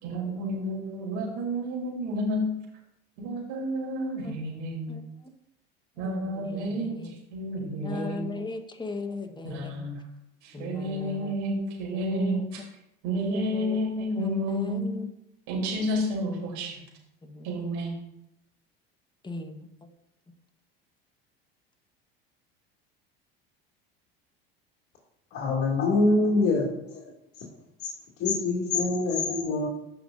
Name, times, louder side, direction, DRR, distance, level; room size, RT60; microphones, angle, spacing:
voice 1, 0.0-2.4 3.2-4.9 6.0-7.0 7.3-8.2 9.4-9.9 10.4-12.6 13.0-14.8 15.5-16.8 17.4-17.9, equal, 65° right, -1 dB, 3.4 m, -30 dB
voice 2, 6.0-7.1 7.8-9.7 10.5-11.3 11.9-12.7 13.3-13.8 14.2-15.1 17.2-17.6 19.2-19.7, left 3 dB, 15° left, 6 dB, 1.2 m, -37 dB
voice 3, 25.3-27.0 27.4-27.5 27.8-27.9 28.2-29.7, left 3 dB, 50° left, -3 dB, 2.6 m, -25 dB
15.0 x 5.7 x 2.6 m, 0.84 s
hypercardioid pair, 85°, 30 cm